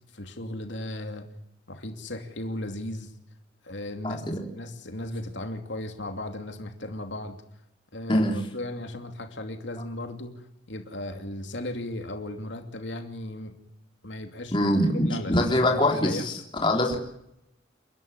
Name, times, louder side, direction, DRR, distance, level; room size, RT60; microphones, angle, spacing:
voice 1, 0.1-1.3 1.7-3.1 3.6-4.2 4.5-7.4 7.9-8.3 8.5-10.3 10.7-13.5 14.0-16.2, left 1 dB, 75° left, 5 dB, 2.7 m, -36 dB
voice 2, 4.0-4.4 8.1-8.4 14.5-16.3 16.6-17.0, left 1 dB, 25° left, 2 dB, 3.7 m, -23 dB
30.0 x 12.0 x 9.8 m, 0.80 s
head